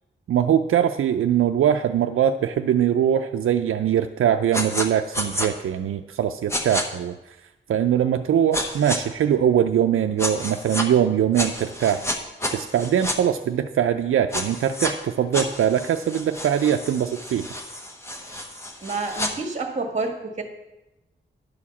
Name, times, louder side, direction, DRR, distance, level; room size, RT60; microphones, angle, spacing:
voice 1, 0.3-7.2 7.7-12.0 12.5-17.5, right 9 dB, 85° right, 6 dB, 0.4 m, -22 dB
sound 1, 4.5-4.9 5.1-5.5 6.5-6.8 8.5-9.0 10.2-10.9 11.3-13.2 14.3-14.9 15.3-19.3, left 1 dB, 10° left, 1.0 m, -30 dB
voice 2, 18.8-20.4, right 3 dB, 35° right, 4 dB, 1.6 m, -28 dB
10.5 x 4.8 x 7.0 m, 1.0 s
wide cardioid pair, 160°, 21 cm